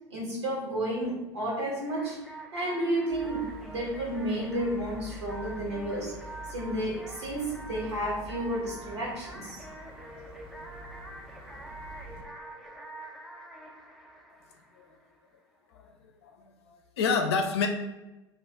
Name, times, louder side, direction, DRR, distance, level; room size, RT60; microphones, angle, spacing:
voice 1, 0.1-2.2 2.5-6.1 6.5-9.6, right 1 dB, 80° right, -3 dB, 1.1 m, -31 dB
sound 1, 1.9-15.3, right 1 dB, ahead, 0.4 m, -46 dB
sound 2, 3.1-12.2, left 1 dB, 40° right, 0.7 m, -47 dB
voice 2, 16.2-17.7, left 5 dB, 70° left, 5 dB, 0.5 m, -29 dB
2.5 x 2.4 x 3.3 m, 1.0 s
figure-of-eight pair, 75°, 14 cm